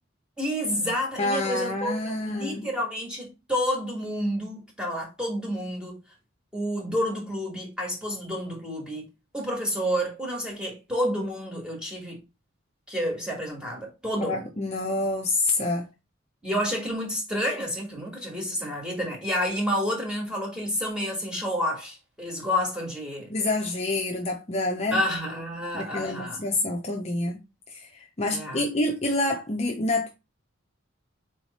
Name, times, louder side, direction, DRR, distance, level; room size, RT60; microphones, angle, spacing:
voice 1, 0.4-6.0 6.5-12.2 12.9-14.5 16.4-23.3 24.9-26.4 28.3-28.7, equal, 5° right, 1.5 m, -29 dB
voice 2, 1.2-2.6 14.2-15.9 23.3-25.0 25.7-27.4 27.7-30.1, left 2 dB, 30° left, 0.5 m, -27 dB
4.0 x 3.2 x 4.1 m
head